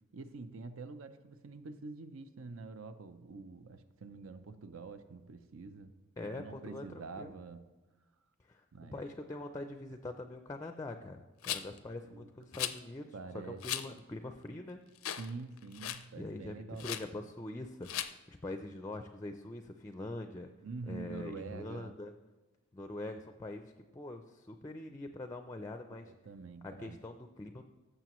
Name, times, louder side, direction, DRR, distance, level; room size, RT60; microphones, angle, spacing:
voice 1, 0.1-5.9 6.3-7.7 8.7-9.0 12.1-12.3 13.1-13.6 15.2-17.0 20.6-21.9 25.9-27.0, right 4 dB, 80° right, 11 dB, 0.6 m, -46 dB
voice 2, 6.2-7.3 8.5-8.6 8.9-14.8 16.2-20.5 20.9-22.1 22.7-26.1 26.6-27.6, left 2 dB, 15° left, 7 dB, 0.4 m, -43 dB
Rattle, 11.4-11.8 12.5-12.8 13.6-13.9 14.3-14.4 15.0-15.3 15.6-16.0 16.8-17.0 17.8-18.1, left 12 dB, 90° left, 0.5 m, -37 dB
15.0 x 6.7 x 3.0 m, 1.2 s
head